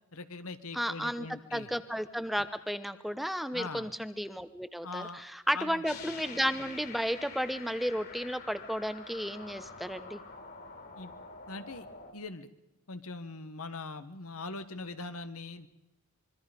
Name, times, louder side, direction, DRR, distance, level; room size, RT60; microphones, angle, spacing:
voice 1, 0.1-1.7 3.5-3.9 4.8-5.2 5.5-5.8 10.9-11.1 11.5-11.8 12.1-12.5 12.9-15.7, left 3 dB, 80° left, 11 dB, 1.5 m, -41 dB
voice 2, 0.7-1.3 1.5-10.2, equal, ahead, 11 dB, 0.9 m, -33 dB
sound 1, 5.8-12.1, left 4 dB, 45° left, 3.5 m, -47 dB
25.5 x 23.5 x 5.3 m, 0.91 s
head